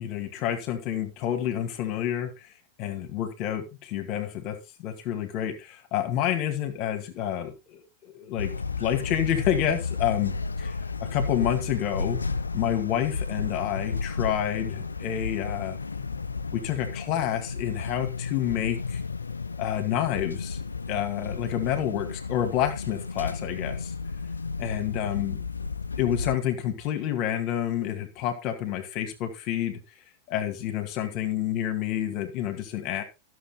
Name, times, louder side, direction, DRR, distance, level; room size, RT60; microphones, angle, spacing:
voice 1, 0.0-2.5 2.8-4.6 4.8-8.5 8.8-10.8 11.0-12.2 12.5-15.8 16.5-19.0 19.6-20.6 20.9-23.9 24.6-25.4 26.0-29.8 30.3-33.0, left 10 dB, 40° left, 2.1 m, -29 dB
sound 1, 8.4-26.4, left 4 dB, 75° left, 0.6 m, -33 dB
13.5 x 6.9 x 4.1 m
figure-of-eight pair, 90°, 0 cm